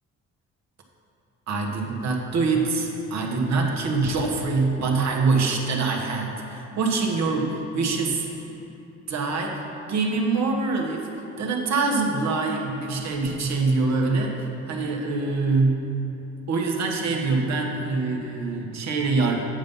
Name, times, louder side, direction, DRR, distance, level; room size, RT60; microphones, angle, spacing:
voice 1, 1.5-8.3 9.1-11.1 11.4-15.8 16.5-19.4, right 3 dB, 65° right, 1 dB, 1.3 m, -24 dB
8.8 x 5.4 x 5.4 m, 2.8 s
cardioid pair, 90°, 30 cm